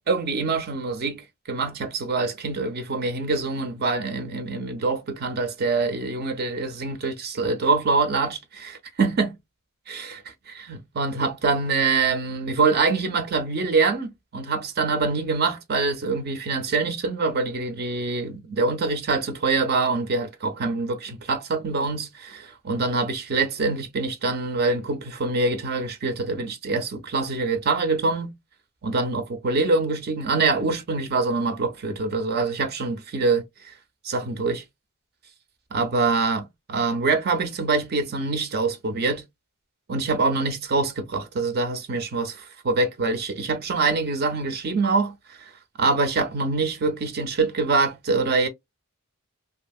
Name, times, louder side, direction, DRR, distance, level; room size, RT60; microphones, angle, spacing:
voice 1, 0.1-9.4 9.9-10.3 10.7-28.3 28.8-33.7 34.0-34.6 35.7-39.2 39.9-45.5 45.8-48.5, right 3 dB, 45° right, 0.5 m, -25 dB
2.7 x 2.6 x 2.3 m
head